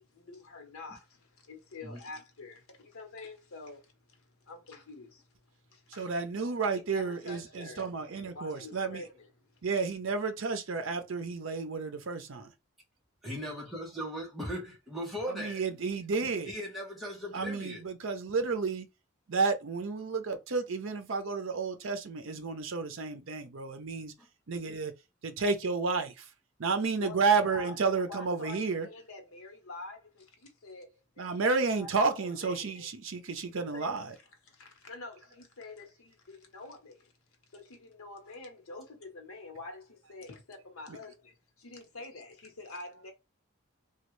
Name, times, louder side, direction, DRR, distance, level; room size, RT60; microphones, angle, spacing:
voice 1, 0.0-5.2 5.7-6.2 6.7-7.9 8.3-9.6 27.0-30.9 31.2-31.4 31.8-32.9 33.5-37.1 37.5-43.1, left 3 dB, 80° left, 1.0 m, -47 dB
voice 2, 6.0-9.0 9.6-12.5 15.3-16.5 17.3-18.9 19.3-24.1 24.5-24.9 25.2-26.2 26.6-28.9 31.2-34.1, right 4 dB, 65° right, 0.6 m, -31 dB
voice 3, 13.2-15.6 16.4-17.8, equal, ahead, 0.9 m, -38 dB
3.1 x 2.3 x 3.1 m
head